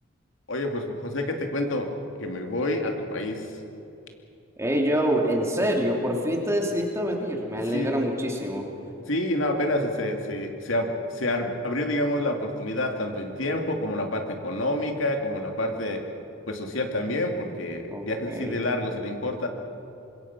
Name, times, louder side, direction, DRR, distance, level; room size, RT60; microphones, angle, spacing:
voice 1, 0.5-1.9 2.2-3.5 7.7-7.9 9.1-16.0 16.5-19.5, left 1 dB, 85° left, 3 dB, 2.5 m, -28 dB
voice 2, 4.6-8.7 17.9-18.6, equal, 15° right, 0 dB, 2.9 m, -26 dB
25.0 x 22.5 x 6.1 m, 2.9 s
head